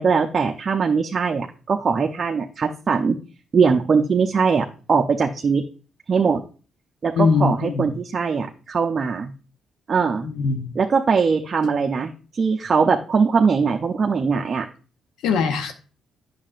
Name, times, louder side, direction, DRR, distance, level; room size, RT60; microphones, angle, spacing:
voice 1, 0.0-3.2 3.5-5.6 6.1-6.4 7.0-9.3 9.9-10.3 10.7-14.7, right 5 dB, 40° right, 3 dB, 0.6 m, -21 dB
voice 2, 7.2-7.8 10.2-10.7 15.2-15.7, left 5 dB, 90° left, 7 dB, 0.8 m, -21 dB
8.6 x 6.4 x 2.5 m, 0.36 s
cardioid pair, 90°, 0 cm